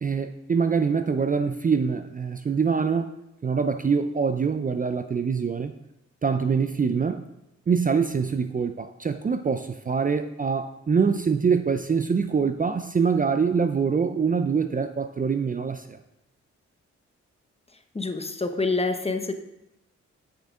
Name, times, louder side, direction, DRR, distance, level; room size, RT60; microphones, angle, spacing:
voice 1, 0.0-3.1 3.4-5.7 6.2-7.2 7.7-16.0, right 5 dB, 30° right, 9 dB, 0.5 m, -24 dB
voice 2, 17.9-19.3, left 3 dB, 20° left, 7 dB, 0.9 m, -26 dB
8.6 x 6.8 x 3.8 m, 0.88 s
cardioid pair, 60°, 30 cm